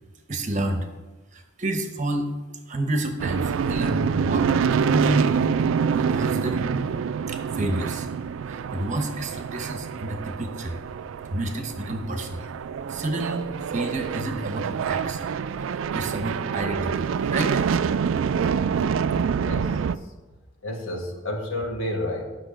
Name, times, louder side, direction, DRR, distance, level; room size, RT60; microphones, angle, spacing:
voice 1, 0.3-0.9 1.3-2.4 2.7-5.4 5.9-7.0 7.3-8.1 8.5-10.8 11.3-12.4 12.9-15.3 15.7-17.6, right 1 dB, 40° right, 5 dB, 1.0 m, -29 dB
sound 1, 3.2-20.0, right 6 dB, 85° right, 0.3 m, -26 dB
voice 2, 19.4-19.8 20.6-22.3, left 1 dB, 90° left, 1 dB, 1.6 m, -30 dB
8.9 x 6.5 x 5.0 m, 1.2 s
head